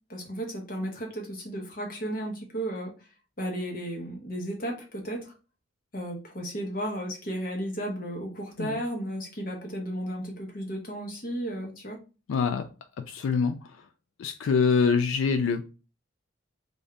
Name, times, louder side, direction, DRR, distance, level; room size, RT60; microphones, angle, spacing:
voice 1, 0.1-2.9 3.4-5.3 5.9-12.0, right 1 dB, 45° left, 1 dB, 1.0 m, -34 dB
voice 2, 12.3-12.7 13.1-13.5 14.2-15.6, left 5 dB, 80° left, 8 dB, 0.3 m, -24 dB
3.3 x 2.6 x 3.6 m, 0.33 s
head